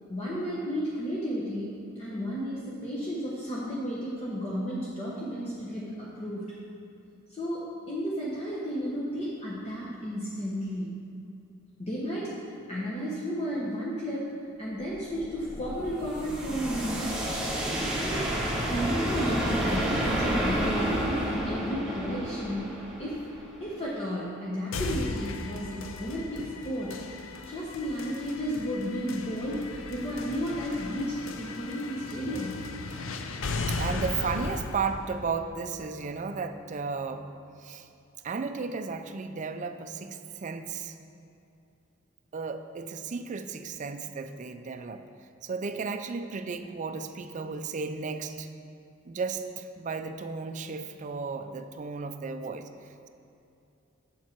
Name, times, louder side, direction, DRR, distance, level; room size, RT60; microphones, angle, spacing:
voice 1, 0.1-6.5 7.3-11.0 11.8-14.3 14.6-17.2 17.9-18.3 18.7-23.2 23.6-32.6, equal, 30° left, -6 dB, 0.9 m, -33 dB
sound 1, 14.8-23.8, equal, 5° right, 1.3 m, -30 dB
sound 2, 24.7-36.7, left 3 dB, 75° left, 0.5 m, -37 dB
voice 2, 33.7-37.3 37.6-37.9 38.2-41.0 42.3-45.0 45.4-48.5 49.1-53.1, right 5 dB, 40° right, 8 dB, 0.4 m, -34 dB
7.4 x 7.3 x 4.5 m, 2.7 s
head